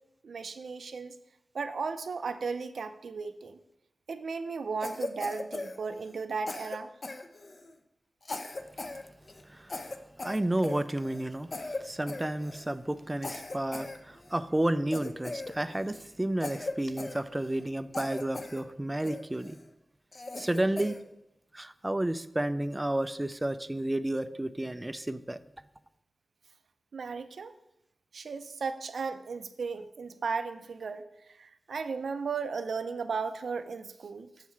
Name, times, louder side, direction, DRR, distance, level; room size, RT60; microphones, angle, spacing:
voice 1, 0.2-1.1 1.5-3.6 4.1-6.9 26.9-27.5 28.1-31.0 31.3-34.3, right 5 dB, 80° right, 10 dB, 0.5 m, -35 dB
Cough, 4.8-6.2 6.5-7.7 8.2-9.0 9.3-9.4 9.7-11.2 11.5-11.8 12.1-12.7 13.2-14.4 14.9-16.0 16.4-17.6 17.9-18.6 19.0-19.6 20.1-21.0, left 2 dB, 40° left, 0.6 m, -39 dB
voice 2, 9.5-9.8 10.2-11.5 11.8-19.6 20.4-21.0 21.5-25.4, right 1 dB, 15° right, 13 dB, 0.3 m, -31 dB
7.3 x 5.6 x 4.5 m, 0.86 s
wide cardioid pair, 125°, 0 cm